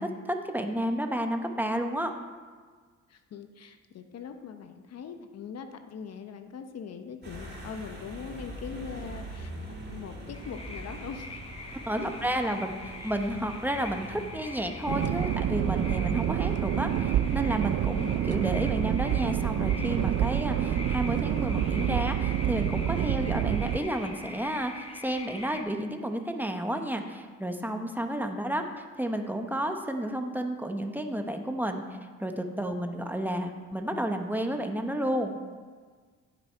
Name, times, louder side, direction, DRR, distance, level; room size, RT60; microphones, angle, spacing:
voice 1, 0.0-2.1 11.9-31.8 32.2-35.4, right 1 dB, 5° right, 5 dB, 1.0 m, -31 dB
voice 2, 3.1-11.4 12.0-12.1 12.4-12.5, left 6 dB, 55° left, 8 dB, 0.8 m, -41 dB
sound 1, 7.2-23.1, right 1 dB, 35° right, 3.2 m, -45 dB
sound 2, 10.3-25.6, left 2 dB, 20° left, 1.2 m, -43 dB
sound 3, 14.9-23.8, right 10 dB, 55° right, 0.5 m, -27 dB
15.5 x 6.1 x 4.5 m, 1.5 s
cardioid pair, 90°, 30 cm